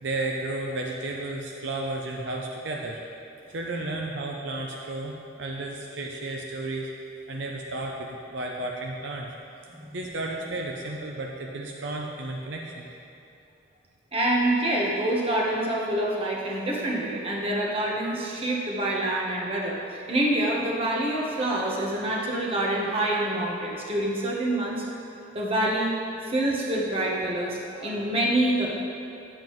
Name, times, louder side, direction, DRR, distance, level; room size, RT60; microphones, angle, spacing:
voice 1, 0.0-3.0 3.5-9.3 9.9-12.9, right 2 dB, 70° right, 0 dB, 0.5 m, -33 dB
voice 2, 14.1-24.9 25.3-25.9 26.3-28.7, right 1 dB, 30° right, -3 dB, 1.0 m, -26 dB
8.8 x 7.5 x 3.1 m, 2.7 s
head